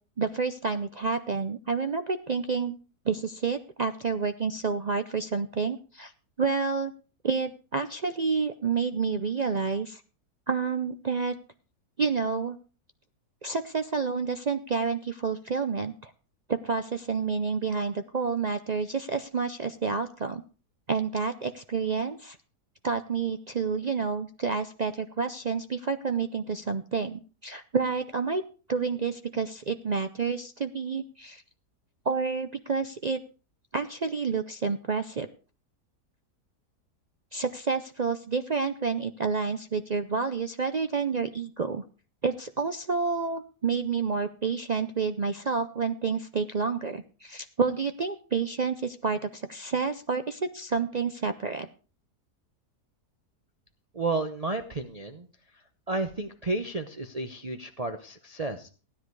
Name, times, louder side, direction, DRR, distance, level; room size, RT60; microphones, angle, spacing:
voice 1, 0.2-2.8 3.1-6.1 6.4-6.9 7.2-10.0 10.5-11.4 12.0-12.6 13.4-16.1 16.5-20.4 20.9-22.4 22.8-28.4 28.7-31.4 32.1-33.2 33.7-35.3 37.3-41.8 42.2-51.7, right 5 dB, 75° right, 8 dB, 0.3 m, -29 dB
voice 2, 53.9-55.3 55.9-58.7, right 2 dB, 30° right, 6 dB, 0.7 m, -32 dB
16.0 x 10.0 x 4.7 m, 0.36 s
omnidirectional pair, 1.7 m